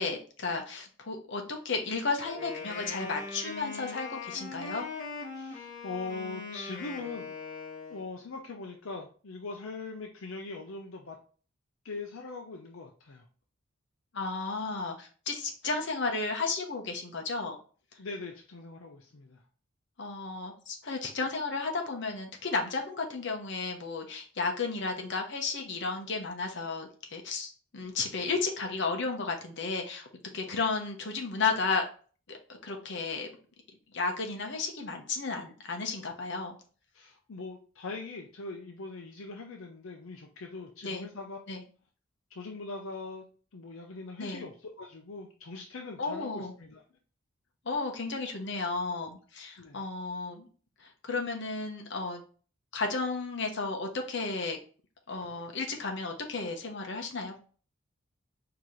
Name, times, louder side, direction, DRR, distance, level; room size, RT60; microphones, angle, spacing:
voice 1, 0.0-4.9 14.1-17.6 20.0-30.1 30.3-31.9 32.3-33.3 33.9-36.6 40.8-41.1 41.5-41.6 44.2-44.4 46.0-46.5 47.6-50.5 50.8-52.2 52.7-54.6 55.1-57.4, left 4 dB, 55° left, 3 dB, 0.9 m, -33 dB
Wind instrument woodwind instrument, 2.2-8.1, left 4 dB, 40° left, 1.9 m, -41 dB
voice 2, 5.4-7.3 7.9-11.2 11.8-13.2 18.0-19.4 36.9-41.4 42.3-43.2 43.5-46.8 49.6-49.8, left 3 dB, 75° left, 2 dB, 0.6 m, -41 dB
4.7 x 2.9 x 3.7 m, 0.40 s
head